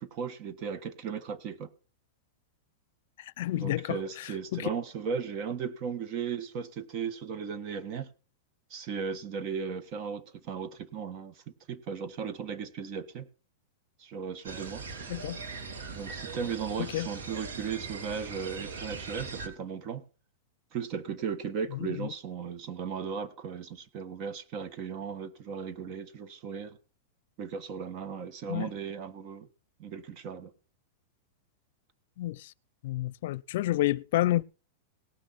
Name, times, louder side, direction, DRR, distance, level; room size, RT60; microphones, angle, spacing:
voice 1, 0.0-1.7 3.5-8.1 8.7-11.3 11.7-13.3 14.0-14.8 15.9-20.0 20.7-26.8 27.4-29.5 29.8-30.5, right 6 dB, 45° right, 1.6 m, -36 dB
voice 2, 3.4-4.0 4.5-4.7 15.1-15.4 16.8-17.1 21.7-22.1 28.5-28.7 32.2-32.5 32.8-34.4, left 15 dB, 65° left, 0.5 m, -29 dB
sound 1, 14.4-19.5, right 4 dB, 80° right, 3.0 m, -40 dB
18.5 x 6.3 x 4.3 m
hypercardioid pair, 135°, 0 cm